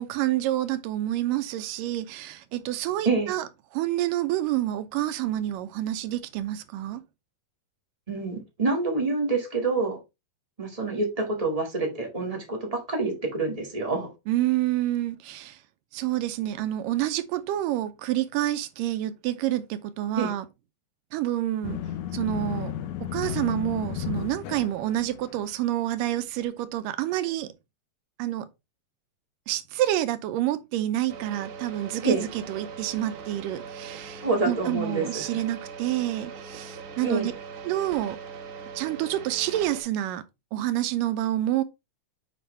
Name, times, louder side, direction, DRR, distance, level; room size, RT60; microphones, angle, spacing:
voice 1, 0.0-3.5 3.7-7.0 14.3-15.6 15.9-20.5 21.1-21.8 22.1-22.7 23.0-27.5 28.2-28.5 29.5-37.3 37.6-38.2 38.8-40.2 40.5-41.6, right 13 dB, 90° right, 2.4 m, -28 dB
voice 2, 8.1-10.0 10.6-14.1 20.1-20.3 32.0-32.2 34.2-35.4 37.0-37.3, right 3 dB, 15° right, 1.5 m, -27 dB
sound 1, 21.6-25.5, left 10 dB, 75° left, 2.1 m, -33 dB
sound 2, 31.1-39.8, right 5 dB, 70° right, 2.9 m, -41 dB
7.8 x 5.0 x 3.3 m
omnidirectional pair, 3.8 m